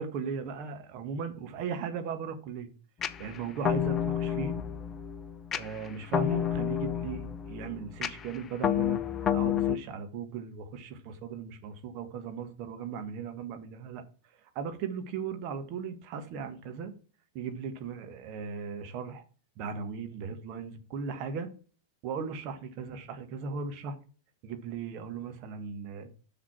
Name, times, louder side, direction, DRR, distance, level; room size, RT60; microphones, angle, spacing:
voice 1, 0.0-2.7 3.2-4.5 5.5-9.0 9.3-14.0 14.5-16.9 17.3-19.2 19.6-21.5 22.0-23.9 24.4-26.1, right 6 dB, 40° right, 1.6 m, -37 dB
sound 1, 3.0-9.8, left 9 dB, 25° left, 0.6 m, -30 dB
6.8 x 6.3 x 5.8 m
figure-of-eight pair, 90°, 0 cm